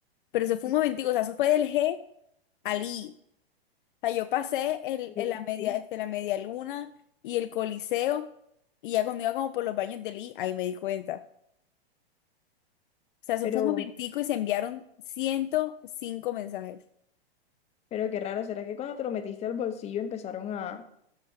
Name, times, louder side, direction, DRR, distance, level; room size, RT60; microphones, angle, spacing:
voice 1, 0.3-2.0 2.6-3.1 4.0-6.9 7.2-8.3 8.8-11.2 13.3-14.8 15.2-15.7 16.0-16.8, left 13 dB, 55° left, 9 dB, 0.5 m, -29 dB
voice 2, 13.4-13.9 17.9-20.8, left 9 dB, 20° left, 8 dB, 0.8 m, -32 dB
12.5 x 4.5 x 5.0 m, 0.73 s
hypercardioid pair, 125°, 32 cm